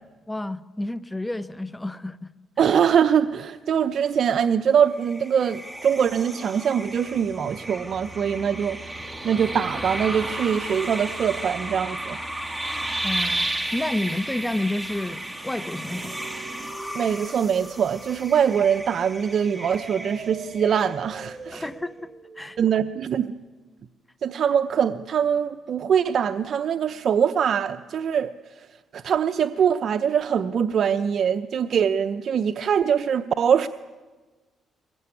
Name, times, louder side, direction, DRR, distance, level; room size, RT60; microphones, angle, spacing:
voice 1, 0.3-2.3 13.0-16.2 21.5-22.1 22.4-22.6, left 1 dB, 10° left, 1.0 m, -30 dB
voice 2, 2.6-9.0 9.2-12.2 16.9-21.7 22.6-23.3 24.2-28.3 28.6-28.7 28.9-33.7, right 7 dB, 60° right, 0.7 m, -23 dB
sound 1, 5.0-21.3, right 1 dB, 10° right, 2.4 m, -33 dB
sound 2, 15.9-18.7 19.7-22.8, right 4 dB, 40° right, 3.0 m, -42 dB
23.0 x 21.5 x 9.8 m
cardioid pair, 90°, 0 cm